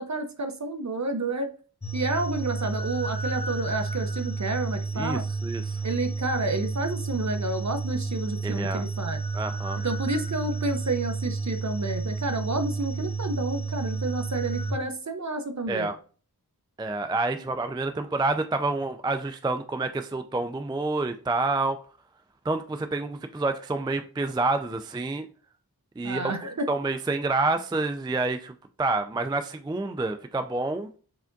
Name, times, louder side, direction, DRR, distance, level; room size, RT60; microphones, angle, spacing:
voice 1, 0.0-1.5 1.9-5.2 5.8-9.2 9.8-15.9 26.0-26.7, right 2 dB, 45° right, 0.7 m, -30 dB
sound 1, 1.8-14.7, right 4 dB, 15° left, 0.8 m, -31 dB
voice 2, 4.9-5.8 8.4-8.8 9.3-9.8 15.7-16.0 16.8-21.8 22.4-25.3 26.0-26.3 26.7-30.9, right 3 dB, 10° right, 0.3 m, -28 dB
4.9 x 3.4 x 2.6 m
wide cardioid pair, 45°, 39 cm